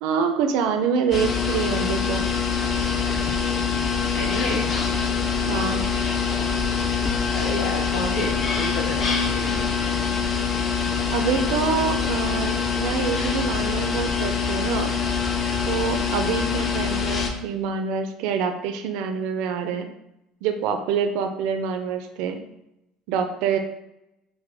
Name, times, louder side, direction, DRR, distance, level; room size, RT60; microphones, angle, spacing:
voice 1, 0.0-2.3 5.5-5.9 11.1-15.0 15.7-19.9 20.4-22.4 23.1-23.6, right 6 dB, 75° right, 6 dB, 0.4 m, -26 dB
sound 1, 1.1-17.3, left 6 dB, 35° left, 0.5 m, -24 dB
voice 2, 4.1-4.7 7.3-9.6, left 1 dB, 65° left, -3 dB, 1.3 m, -30 dB
4.8 x 2.2 x 3.3 m, 0.87 s
cardioid pair, 120°, 0 cm